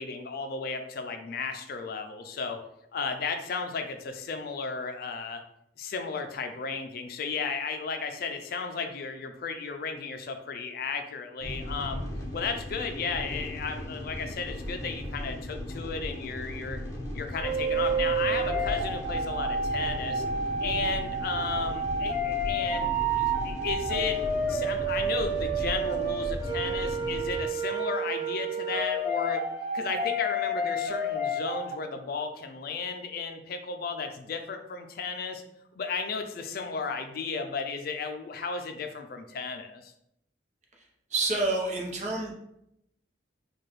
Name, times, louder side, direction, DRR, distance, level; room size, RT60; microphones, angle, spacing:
voice 1, 0.0-2.6 2.9-5.4 5.8-12.0 12.3-16.8 17.1-20.2 20.6-24.2 24.5-29.5 29.7-35.4 35.7-39.9, left 5 dB, 55° left, 6 dB, 0.4 m, -34 dB
sound 1, 11.4-27.4, left 1 dB, 15° left, 0.8 m, -37 dB
sound 2, 17.4-31.7, right 2 dB, ahead, 1.3 m, -30 dB
voice 2, 41.1-42.3, right 2 dB, 40° right, -1 dB, 0.8 m, -28 dB
4.6 x 2.3 x 3.1 m, 0.80 s
head